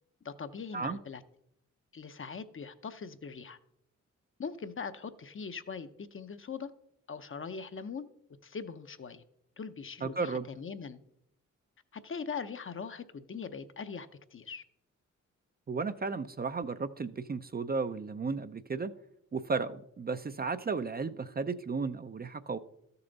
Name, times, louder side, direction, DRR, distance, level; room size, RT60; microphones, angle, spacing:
voice 1, 0.2-1.2 1.9-3.6 4.4-6.7 7.1-8.1 8.4-9.2 9.6-11.0 11.9-14.6, left 5 dB, 40° left, 10 dB, 0.7 m, -41 dB
voice 2, 10.0-10.5 15.7-18.9 19.3-22.6, right 4 dB, 30° right, 11 dB, 0.5 m, -34 dB
13.0 x 6.8 x 4.0 m, 0.80 s
cardioid pair, 65°, 31 cm